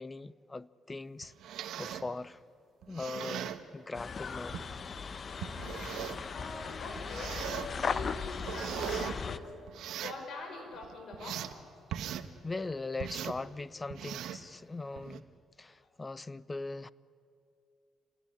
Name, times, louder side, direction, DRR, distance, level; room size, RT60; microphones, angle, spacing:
voice 1, 0.0-2.4 2.9-4.6 12.4-15.3 15.6-16.9, left 3 dB, 25° left, 0.6 m, -40 dB
sound 1, 1.2-2.1 2.8-3.6 4.5-4.7 5.4-6.3 7.0-7.7 8.2-9.1 9.7-10.2 10.7-11.5 11.9-12.3 13.0-13.4 13.9-14.4 15.0-15.2, right 10 dB, 80° right, 1.2 m, -39 dB
sound 2, 3.9-9.4, left 5 dB, 45° left, 1.0 m, -38 dB
voice 2, 6.3-9.5 10.0-11.5, left 3 dB, 65° left, 5.9 m, -44 dB
27.0 x 18.0 x 9.9 m
cardioid pair, 90°, 0 cm